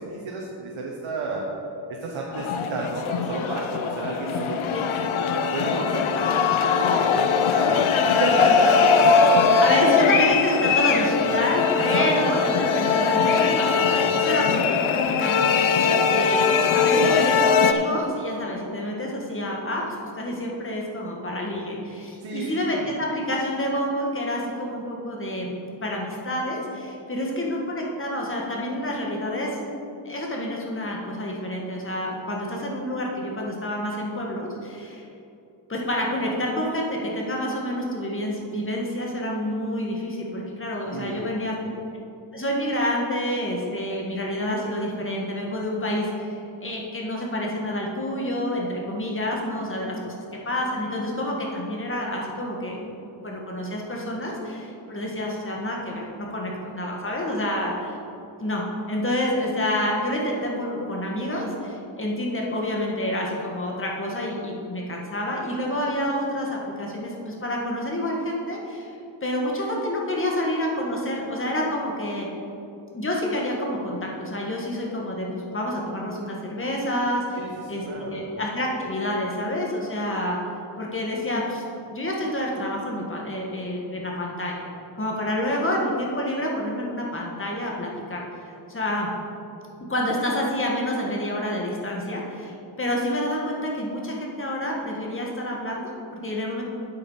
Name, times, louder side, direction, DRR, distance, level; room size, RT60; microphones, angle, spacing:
voice 1, 0.0-1.5 2.0-5.1 5.5-9.2 9.5-9.7 11.8-12.1 22.2-22.9 40.9-41.2 41.6-41.7 77.3-78.2, right 3 dB, 85° right, -2 dB, 1.4 m, -31 dB
sound 1, 2.3-17.7, left 5 dB, 85° left, 0.7 m, -21 dB
voice 2, 9.6-15.5 16.1-25.6 25.8-29.6 30.0-35.0 35.7-41.5 42.3-50.2 50.5-52.8 53.2-58.0 58.4-68.9 69.2-72.3 72.9-80.4 80.8-84.7 85.0-88.2 88.7-89.1 89.9-96.6, left 1 dB, 25° left, -2 dB, 1.6 m, -28 dB
8.5 x 8.2 x 5.6 m, 2.7 s
wide cardioid pair, 155°, 47 cm